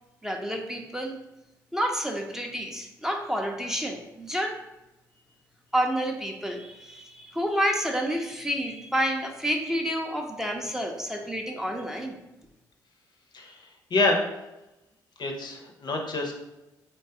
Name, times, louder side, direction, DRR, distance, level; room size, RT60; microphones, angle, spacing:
voice 1, 0.2-1.2 1.7-4.6 5.7-12.2, equal, 5° right, 1 dB, 0.5 m, -29 dB
voice 2, 15.2-16.3, left 2 dB, 50° left, 2 dB, 0.6 m, -26 dB
3.1 x 2.3 x 2.7 m, 0.95 s
hypercardioid pair, 50°, 9 cm